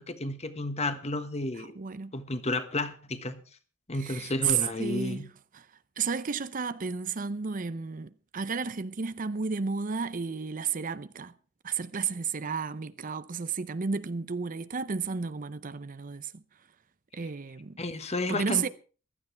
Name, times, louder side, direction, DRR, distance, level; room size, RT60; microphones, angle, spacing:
voice 1, 0.0-1.7 2.1-3.4 3.9-5.3 17.8-18.7, left 2 dB, 35° left, 1.4 m, -32 dB
voice 2, 1.6-2.1 4.0-5.3 5.5-5.7 6.0-11.3 11.6-16.4 17.1-17.8 18.3-18.7, right 5 dB, 45° right, 0.6 m, -32 dB
16.0 x 12.0 x 4.5 m
head